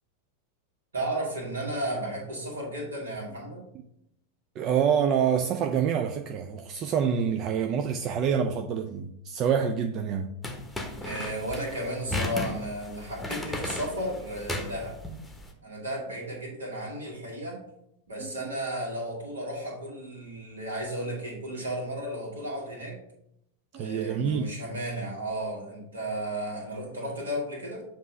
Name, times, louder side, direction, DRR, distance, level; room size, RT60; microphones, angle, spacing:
voice 1, 0.9-3.6 11.0-15.0 15.6-17.6 18.1-23.0 23.7-27.8, right 1 dB, 70° right, 2.0 m, -34 dB
voice 2, 4.6-10.3 18.2-18.5 23.7-24.5, right 7 dB, 35° right, 0.4 m, -27 dB
sound 1, 10.4-15.5, left 1 dB, 5° left, 1.0 m, -35 dB
7.3 x 2.9 x 5.4 m
figure-of-eight pair, 90°, 0 cm